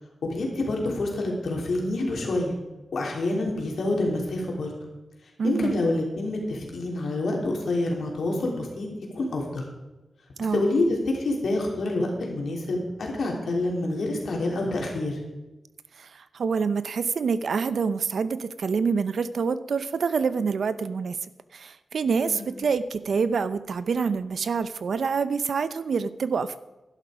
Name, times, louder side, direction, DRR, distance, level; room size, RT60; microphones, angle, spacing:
voice 1, 0.3-2.5 2.9-4.7 5.4-8.9 9.1-9.6 10.5-15.2 22.2-22.5, left 2 dB, 70° left, 0 dB, 3.2 m, -27 dB
voice 2, 5.4-5.8 10.4-10.7 16.0-21.2 21.5-26.6, right 5 dB, 65° right, 14 dB, 0.6 m, -26 dB
12.0 x 11.5 x 5.0 m, 1.1 s
wide cardioid pair, 175°, 0 cm